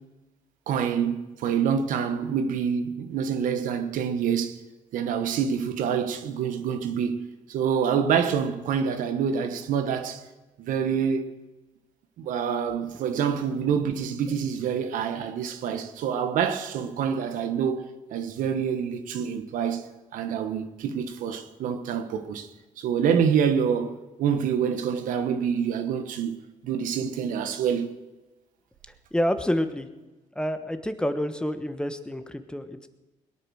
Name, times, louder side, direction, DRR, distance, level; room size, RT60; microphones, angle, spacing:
voice 1, 0.7-4.6 4.9-10.2 10.6-11.3 12.2-17.8 18.1-19.8 20.1-22.5 22.8-26.4 26.6-27.9, right 7 dB, 75° right, 1.4 m, -26 dB
voice 2, 29.1-29.9 30.3-32.9, equal, 5° left, 1.2 m, -28 dB
21.5 x 9.0 x 6.4 m
cardioid pair, 85°, 14 cm